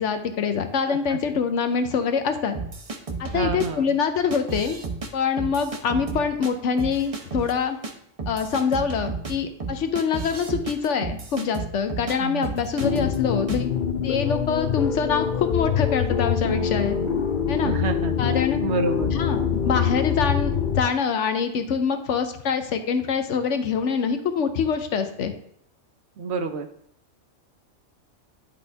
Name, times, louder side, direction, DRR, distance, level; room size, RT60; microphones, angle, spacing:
voice 1, 0.0-2.6 3.2-4.8 5.1-7.8 8.3-13.7 14.0-17.0 17.5-17.8 18.2-18.6 19.1-25.3, left 6 dB, 70° left, 8 dB, 1.0 m, -25 dB
voice 2, 0.9-1.2 3.3-4.0 12.2-12.5 17.6-18.1 18.6-19.1 26.2-26.7, right 4 dB, 65° right, 7 dB, 0.9 m, -29 dB
sound 1, 2.5-3.7 4.3-5.1 5.4-6.5 6.8-7.5 7.8-7.9 8.2-12.2 12.4-13.2 13.5-13.7, right 4 dB, 35° right, 0.6 m, -32 dB
sound 2, 12.8-20.8, left 7 dB, 50° left, 0.6 m, -24 dB
10.5 x 4.1 x 3.4 m, 0.70 s
omnidirectional pair, 1.3 m